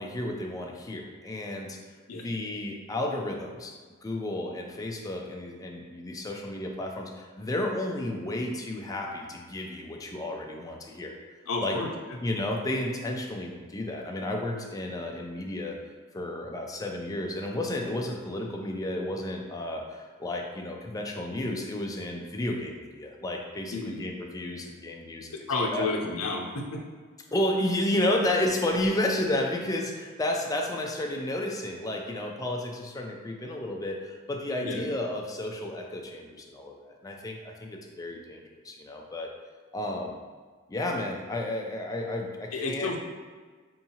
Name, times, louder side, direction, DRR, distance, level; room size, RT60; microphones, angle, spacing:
voice 1, 0.0-1.8 2.1-3.7 4.0-11.1 11.6-11.8 12.2-15.8 16.1-25.3 25.7-25.9 27.3-39.3 39.7-40.2 40.7-42.9, left 1 dB, 15° left, 1 dB, 0.4 m, -32 dB
voice 2, 11.5-11.9 23.7-24.0 25.5-26.8 34.6-34.8 42.5-43.0, left 3 dB, 70° left, 1 dB, 0.6 m, -30 dB
4.6 x 2.7 x 2.8 m, 1.5 s
head